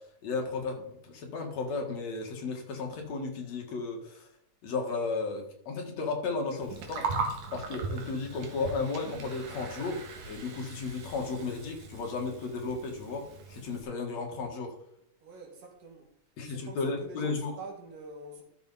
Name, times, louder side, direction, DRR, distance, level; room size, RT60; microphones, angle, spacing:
voice 1, 0.2-4.3 4.6-7.0 7.5-14.7 16.4-17.5, left 4 dB, 60° left, 2.7 m, -34 dB
Gurgling, 6.6-13.8, right 4 dB, 65° right, 2.5 m, -39 dB
voice 2, 15.2-16.1 16.5-18.4, right 4 dB, 85° right, 3.7 m, -45 dB
13.0 x 6.6 x 4.1 m
omnidirectional pair, 3.7 m